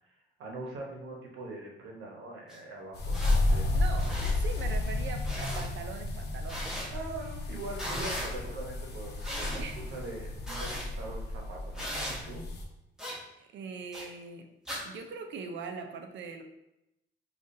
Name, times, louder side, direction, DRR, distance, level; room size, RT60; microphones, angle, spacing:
voice 1, 0.4-3.7 6.9-9.6 9.9-12.4, right 2 dB, 90° right, 0 dB, 0.9 m, -42 dB
sound 1, 2.5-2.6 3.1-3.4 3.9-4.3 5.2-5.7 6.5-6.9 7.7-8.3 9.2-9.6 10.4-10.9 11.7-12.2 13.0-13.2 13.9-14.0 14.7-14.8, equal, 5° right, 1.2 m, -37 dB
sound 2, 2.9-12.6, left 2 dB, 55° left, 0.7 m, -32 dB
voice 2, 3.7-6.8 9.6-9.9 10.8-11.0 13.4-14.5 14.8-16.4, right 5 dB, 70° right, 6 dB, 0.5 m, -42 dB
4.9 x 2.4 x 2.6 m, 0.87 s
cardioid pair, 90°, 20 cm